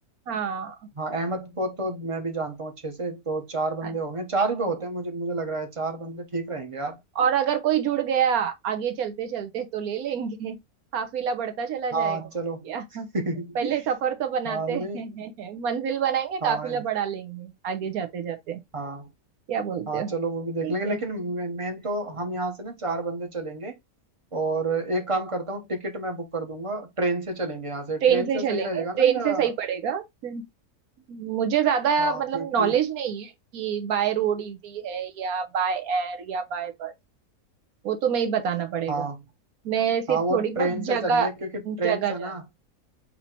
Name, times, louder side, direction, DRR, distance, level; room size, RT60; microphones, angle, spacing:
voice 1, 0.3-0.8 3.8-3.9 7.2-10.6 10.9-12.2 12.6-13.1 13.5-18.6 19.5-20.2 20.6-21.0 28.0-30.4 31.1-36.9 37.8-39.1 39.6-41.3 41.6-42.3, right 8 dB, 75° right, 1.3 m, -26 dB
voice 2, 1.0-7.0 11.9-12.7 13.1-13.7 14.4-15.0 16.4-16.8 18.7-19.1 19.9-23.8 24.3-29.5 32.0-32.7 38.9-39.2 40.1-42.4, right 2 dB, 25° right, 0.8 m, -29 dB
4.1 x 2.8 x 4.3 m
omnidirectional pair, 1.6 m